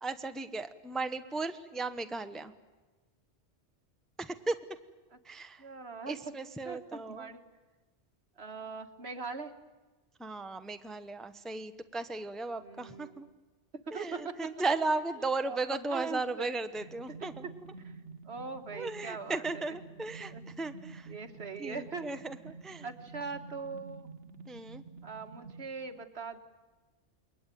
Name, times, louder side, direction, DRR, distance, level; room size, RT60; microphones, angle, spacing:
voice 1, 0.0-2.5 4.2-4.6 5.2-5.6 6.1-7.3 10.2-13.3 13.9-17.5 18.7-21.1 21.6-22.9 24.5-24.8, right 3 dB, ahead, 9 dB, 0.9 m, -36 dB
voice 2, 5.6-6.3 6.7-7.4 8.4-9.5 12.6-13.1 13.9-14.5 15.4-16.5 17.2-17.5 17.8-17.9 18.2-19.8 20.3-20.4 21.1-22.1 22.8-24.1 25.0-26.4, right 4 dB, 65° right, 7 dB, 1.9 m, -41 dB
sound 1, 16.8-25.7, right 4 dB, 80° right, 1.5 m, -49 dB
28.5 x 22.0 x 9.2 m, 1.2 s
omnidirectional pair, 1.2 m